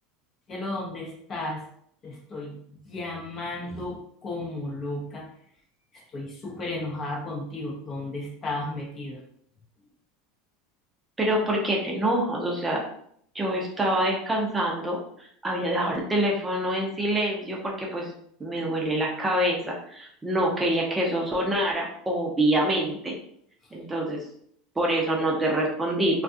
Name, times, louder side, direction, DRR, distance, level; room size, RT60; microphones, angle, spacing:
voice 1, 0.5-1.7 2.0-5.3 5.9-9.2, left 2 dB, 35° left, 0 dB, 0.7 m, -34 dB
voice 2, 11.2-12.8 13.3-18.1 18.4-23.1 23.7-24.3 24.8-26.2, right 1 dB, 15° right, -2 dB, 0.6 m, -26 dB
2.3 x 2.3 x 2.6 m, 0.66 s
supercardioid pair, 110°, 0 cm